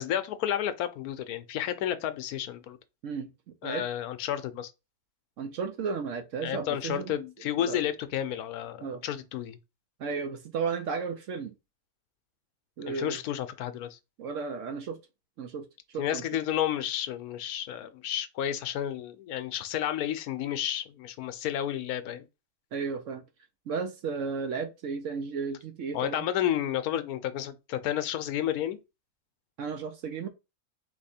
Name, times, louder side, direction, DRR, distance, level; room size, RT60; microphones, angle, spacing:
voice 1, 0.0-2.8 3.6-4.7 6.4-9.6 12.9-14.0 16.0-22.2 25.9-28.8, left 11 dB, 75° left, 1.0 m, -31 dB
voice 2, 5.4-7.1 7.6-7.8 8.8-9.0 10.0-11.6 12.8-13.2 14.2-15.0 15.4-15.7 15.9-16.2 22.7-23.2 23.7-26.3 29.6-30.3, right 5 dB, 65° right, 0.8 m, -34 dB
4.1 x 3.0 x 4.2 m
omnidirectional pair, 1.6 m